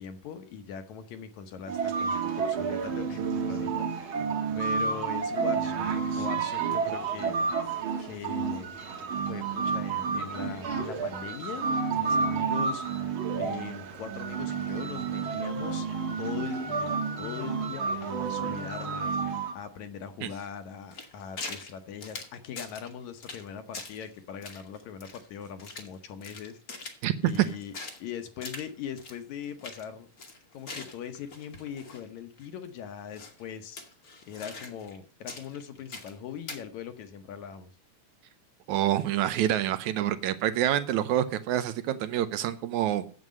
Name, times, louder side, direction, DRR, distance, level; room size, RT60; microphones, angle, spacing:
voice 1, 0.0-4.2 4.6-7.4 8.0-8.8 9.2-15.9 16.2-27.0 27.2-27.7 28.0-30.1 30.5-33.8 34.3-37.7, left 8 dB, 70° left, 9 dB, 2.1 m, -41 dB
sound 1, 1.7-19.5, right 5 dB, 55° right, 1.7 m, -30 dB
sound 2, 20.9-21.7 22.0-22.9 23.2-23.5 23.7-24.1 24.4-25.9 26.2-28.0 28.4-28.7 29.0-29.2 29.4-29.8 30.2-32.0 32.4-32.5 33.2-33.4 33.8-35.0 35.3-36.2 36.5-36.6, left 3 dB, 45° left, 1.1 m, -42 dB
voice 2, 27.0-27.5 38.7-43.1, right 12 dB, 75° right, 12 dB, 2.0 m, -27 dB
9.3 x 7.9 x 6.3 m, 0.40 s
omnidirectional pair, 3.6 m